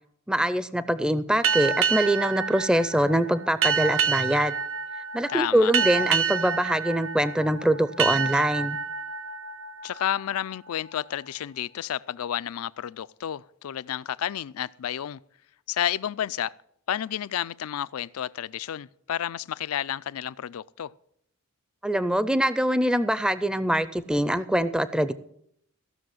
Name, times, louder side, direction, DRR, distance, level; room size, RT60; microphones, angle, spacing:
voice 1, 0.3-4.6 5.1-8.8 21.8-25.1, right 1 dB, 5° right, 0.4 m, -24 dB
sound 1, 1.4-10.7, right 6 dB, 65° right, 0.6 m, -28 dB
voice 2, 5.3-5.7 9.8-15.2 15.7-16.5 16.9-20.9, left 10 dB, 75° left, 0.4 m, -31 dB
15.5 x 6.2 x 7.7 m
head